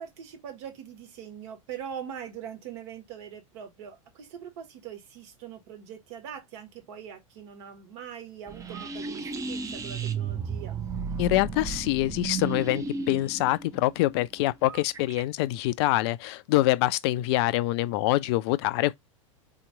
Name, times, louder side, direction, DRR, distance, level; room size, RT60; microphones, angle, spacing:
voice 1, 0.0-10.8, right 8 dB, 55° right, 1.5 m, -42 dB
sound 1, 8.5-15.2, right 5 dB, 20° right, 0.7 m, -34 dB
voice 2, 11.2-18.9, left 17 dB, 50° left, 0.4 m, -25 dB
4.1 x 2.9 x 3.8 m
figure-of-eight pair, 85°, 17 cm